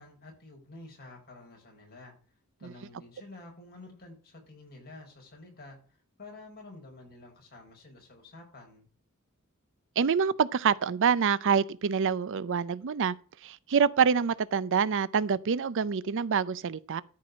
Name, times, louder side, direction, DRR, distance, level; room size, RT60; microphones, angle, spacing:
voice 1, 0.0-2.1 2.6-8.9, left 2 dB, 45° left, 5.1 m, -50 dB
voice 2, 10.0-13.1 13.4-17.0, right 6 dB, 60° right, 0.5 m, -26 dB
13.5 x 4.7 x 6.1 m
head